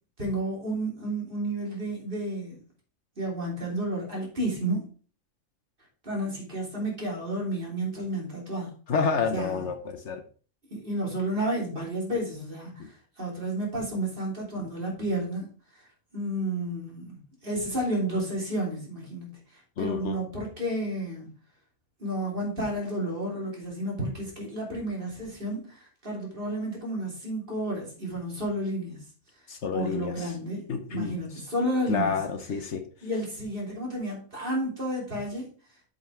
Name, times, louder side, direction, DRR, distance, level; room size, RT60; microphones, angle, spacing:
voice 1, 0.2-2.5 3.2-4.8 6.0-8.7 9.3-9.7 10.7-15.4 15.7-15.8 16.1-21.3 22.0-29.0 29.7-30.6 30.9-32.1 33.0-35.5, right 1 dB, 40° right, -2 dB, 3.3 m, -31 dB
voice 2, 8.9-10.2 19.8-20.2 29.5-30.1 30.7-31.1 31.9-32.8, left 5 dB, 65° left, 8 dB, 1.1 m, -29 dB
7.6 x 5.7 x 4.5 m, 0.39 s
omnidirectional pair, 1.4 m